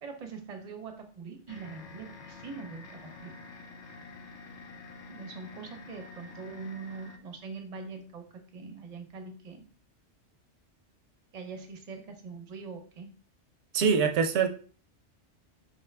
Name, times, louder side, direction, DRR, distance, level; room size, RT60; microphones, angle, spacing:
voice 1, 0.0-3.3 5.1-9.7 11.3-13.1, right 4 dB, 40° right, 5 dB, 0.7 m, -43 dB
sound 1, 1.5-7.2, left 4 dB, 70° left, 0.9 m, -48 dB
voice 2, 13.7-14.5, right 6 dB, 70° right, 6 dB, 0.9 m, -24 dB
5.1 x 2.5 x 3.2 m, 0.41 s
omnidirectional pair, 1.2 m